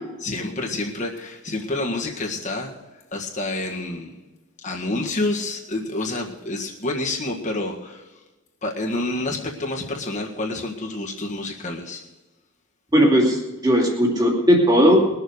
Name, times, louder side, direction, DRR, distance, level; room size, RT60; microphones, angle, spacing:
voice 1, 0.2-2.7 3.1-4.1 4.6-8.1 8.6-12.0, left 2 dB, 35° left, -1 dB, 1.7 m, -28 dB
voice 2, 12.9-15.0, equal, 20° right, -1 dB, 2.6 m, -17 dB
21.0 x 7.1 x 6.6 m, 1.1 s
head